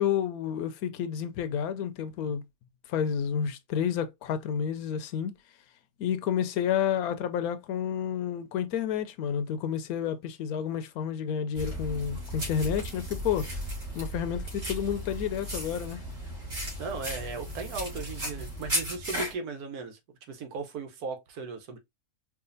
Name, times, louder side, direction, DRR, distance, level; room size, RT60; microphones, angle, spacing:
voice 1, 0.0-2.4 2.9-5.3 6.0-13.6 13.9-16.0, left 8 dB, 75° left, 1.1 m, -30 dB
sound 1, 11.5-19.3, equal, 40° right, 2.2 m, -35 dB
voice 2, 16.8-20.0 20.3-21.8, right 4 dB, 90° right, 1.4 m, -37 dB
4.8 x 2.5 x 2.6 m
omnidirectional pair, 1.6 m